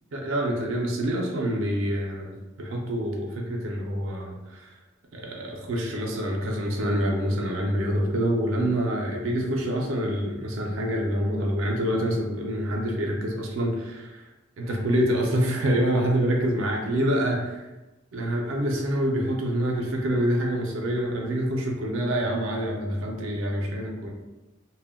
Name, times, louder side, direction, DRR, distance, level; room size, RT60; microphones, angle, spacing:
voice 1, 0.1-4.7 5.1-14.2 14.6-17.6 18.1-24.1, equal, 70° right, 0 dB, 0.5 m, -26 dB
2.2 x 2.1 x 3.4 m, 1.1 s
head